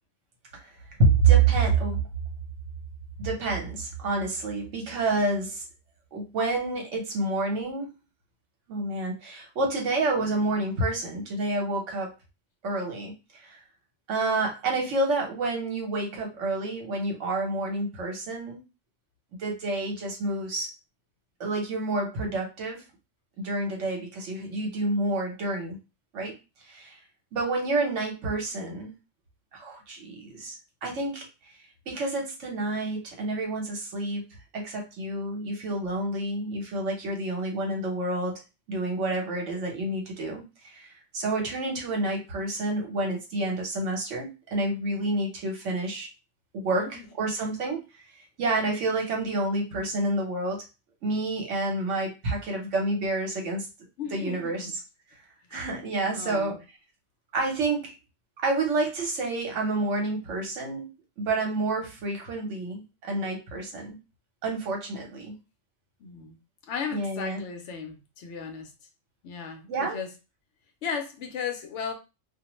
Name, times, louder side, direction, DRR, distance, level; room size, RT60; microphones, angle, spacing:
voice 1, 1.0-2.1 3.2-5.7 6.1-7.9 8.7-12.1 12.6-13.6 14.1-18.6 19.4-20.7 21.4-22.8 23.4-25.8 26.1-26.4 26.7-27.0 27.3-28.9 29.5-30.6 30.8-31.2 31.9-34.2 34.5-38.4 38.7-46.1 46.5-47.8 48.4-50.6 51.0-53.7 54.1-54.7 55.5-56.6 57.3-57.9 58.4-60.9 61.2-63.9 64.4-65.4 66.9-67.4 69.7-70.0, right 3 dB, 75° right, 1.1 m, -28 dB
voice 2, 46.7-47.1 54.0-54.7 55.5-55.6 56.1-56.6 66.0-66.4 66.7-68.7 69.2-70.1 70.8-71.9, left 6 dB, 75° left, 0.9 m, -35 dB
2.4 x 2.0 x 2.9 m
omnidirectional pair, 1.3 m